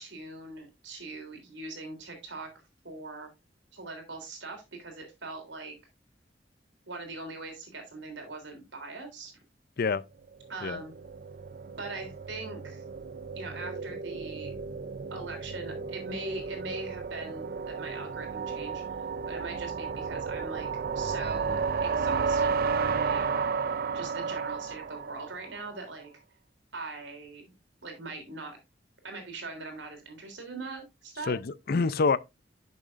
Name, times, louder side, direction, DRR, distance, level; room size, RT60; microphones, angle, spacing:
voice 1, 0.0-2.5 2.8-3.3 3.7-5.8 6.9-9.3 10.5-10.9 11.8-12.8 13.3-14.5 15.1-20.7 20.9-23.3 23.9-26.1 26.7-27.5 27.8-28.6 29.0-31.3, right 3 dB, 85° right, 3.5 m, -41 dB
sound 1, 10.4-25.7, right 5 dB, 55° right, 0.5 m, -33 dB
voice 2, 31.3-32.2, left 4 dB, 55° left, 0.5 m, -26 dB
10.5 x 6.9 x 2.5 m
head